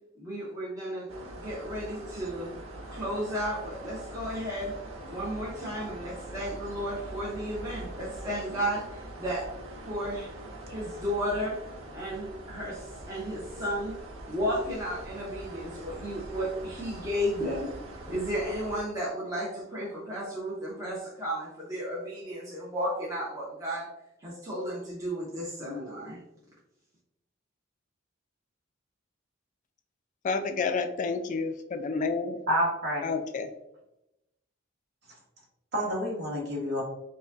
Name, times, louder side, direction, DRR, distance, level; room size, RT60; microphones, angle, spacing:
voice 1, 0.2-1.1 1.3-2.5 2.9-4.7 5.1-9.4 9.8-13.9 14.3-17.7 18.1-23.9 24.2-26.2, equal, 15° right, -7 dB, 0.8 m, -33 dB
sound 1, 1.1-18.8, right 1 dB, 90° right, 0.7 m, -43 dB
voice 2, 30.2-32.4 33.0-33.5, left 4 dB, 40° left, 8 dB, 0.3 m, -30 dB
voice 3, 32.5-33.1 35.7-36.8, equal, 55° right, -3 dB, 1.2 m, -28 dB
5.0 x 2.2 x 2.5 m, 0.90 s
head